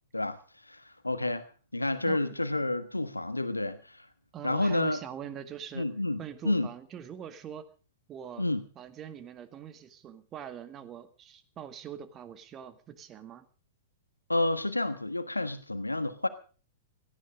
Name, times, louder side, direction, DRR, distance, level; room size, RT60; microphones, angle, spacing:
voice 1, 0.1-1.5 1.7-4.1 4.4-5.0 5.7-6.2 6.4-6.7 8.4-8.6 14.3-16.3, left 2 dB, 85° left, 1.3 m, -30 dB
voice 2, 4.3-5.9 6.2-7.7 8.1-8.5 8.8-13.5, right 9 dB, 25° right, 1.9 m, -43 dB
17.5 x 14.0 x 5.2 m
figure-of-eight pair, 105°, 0 cm